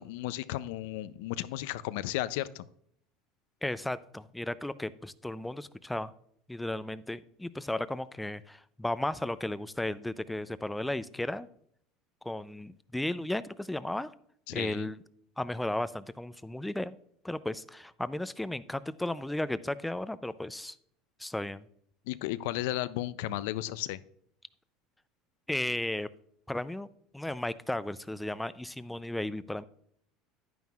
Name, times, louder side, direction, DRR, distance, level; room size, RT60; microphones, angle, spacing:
voice 1, 0.0-2.7 14.5-14.9 22.1-24.0, left 15 dB, 80° left, 16 dB, 0.4 m, -34 dB
voice 2, 3.6-6.1 6.5-11.5 12.2-14.1 14.5-15.0 15.4-17.0 17.2-20.8 21.2-21.6 25.5-26.1 26.5-26.9 27.1-29.6, left 1 dB, 5° left, 15 dB, 0.4 m, -34 dB
10.5 x 9.2 x 2.4 m, 0.67 s
supercardioid pair, 120°, 0 cm